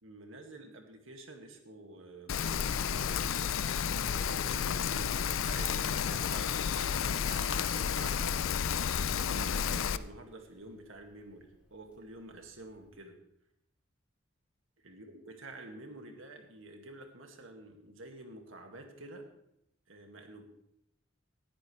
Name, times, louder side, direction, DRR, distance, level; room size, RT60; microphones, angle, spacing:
voice 1, 0.0-3.2 4.2-7.2 7.5-13.2 14.8-19.2 19.9-20.4, right 2 dB, 75° right, 3 dB, 2.1 m, -49 dB
Rain, 2.3-10.0, left 7 dB, 80° left, 0.5 m, -31 dB
Tap, 10.2-12.9, equal, 5° right, 5.1 m, -55 dB
18.5 x 12.5 x 3.3 m, 0.77 s
head